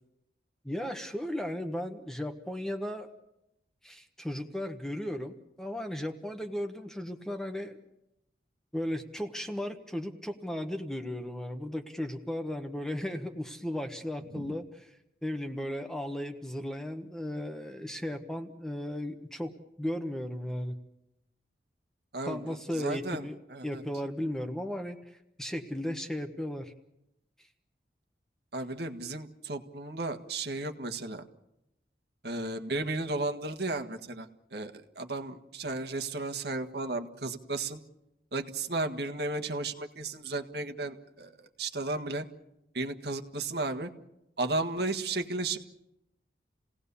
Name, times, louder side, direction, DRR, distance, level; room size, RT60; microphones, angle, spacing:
voice 1, 0.6-3.1 3.8-7.8 8.7-14.9 15.2-19.5 19.8-20.8 22.3-23.4 23.6-26.7, left 1 dB, 5° left, 5 dB, 1.1 m, -35 dB
voice 2, 22.1-23.2 23.5-23.8 28.5-31.2 32.2-37.8 38.3-42.3 42.7-43.9 44.4-45.6, right 2 dB, 60° right, 4 dB, 1.6 m, -34 dB
28.5 x 18.0 x 7.0 m, 0.88 s
head